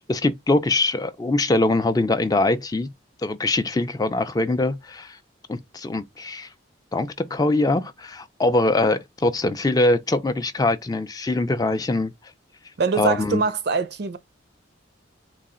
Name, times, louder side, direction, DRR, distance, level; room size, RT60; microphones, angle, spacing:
voice 1, 0.0-2.9 3.2-5.2 5.5-6.5 6.9-12.1 13.0-13.4, left 2 dB, 20° left, 0.3 m, -22 dB
voice 2, 12.8-14.2, right 4 dB, 55° right, 0.5 m, -23 dB
3.9 x 2.4 x 3.7 m
head